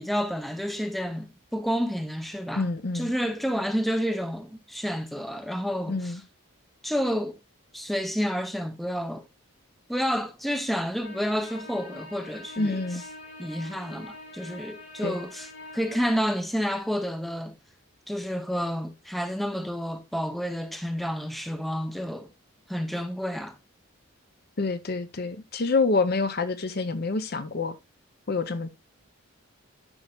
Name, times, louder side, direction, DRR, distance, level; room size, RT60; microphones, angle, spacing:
voice 1, 0.0-2.6 2.9-6.2 6.8-7.4 7.7-9.3 9.9-13.0 13.4-17.5 18.1-22.3 22.7-23.6, equal, ahead, 0.6 m, -30 dB
voice 2, 2.5-3.1 5.9-6.2 12.6-13.0 15.0-15.2 24.6-27.8 28.3-28.7, left 3 dB, 45° left, 0.7 m, -27 dB
sound 1, 11.0-16.1, left 2 dB, 65° left, 5.0 m, -44 dB
11.5 x 5.5 x 2.3 m
head